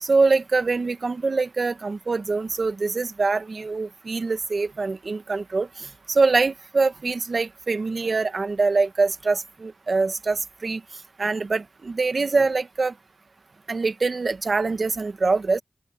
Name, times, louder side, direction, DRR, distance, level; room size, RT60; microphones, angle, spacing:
voice 1, 0.0-10.8 11.2-12.9 13.7-15.6, right 3 dB, 55° right, 1.3 m, -24 dB
wide cardioid pair, 70°, 0 cm